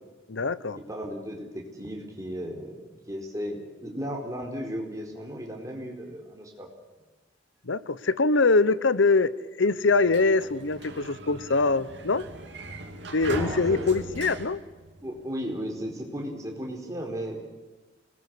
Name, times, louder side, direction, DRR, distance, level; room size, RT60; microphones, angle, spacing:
voice 1, 0.3-0.8 7.7-9.3 9.6-12.2 13.1-14.6, left 3 dB, 85° left, 16 dB, 0.9 m, -23 dB
voice 2, 0.9-6.7 13.2-14.0 15.0-17.4, equal, 15° right, 1 dB, 4.6 m, -35 dB
Sliding door, 9.8-15.5, right 2 dB, 65° right, 2.9 m, -39 dB
26.0 x 20.0 x 8.4 m, 1.2 s
head